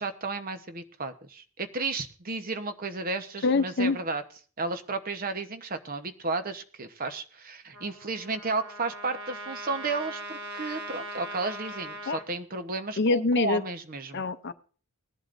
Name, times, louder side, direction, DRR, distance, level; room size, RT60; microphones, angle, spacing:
voice 1, 0.0-4.2 4.6-14.2, right 3 dB, 40° right, 9 dB, 1.0 m, -33 dB
voice 2, 3.4-4.0 12.1-12.2 13.0-13.6 14.1-14.5, left 3 dB, 50° left, 12 dB, 0.6 m, -25 dB
Trumpet, 7.7-12.3, right 1 dB, 80° right, 1.4 m, -40 dB
19.0 x 11.0 x 2.6 m, 0.40 s
head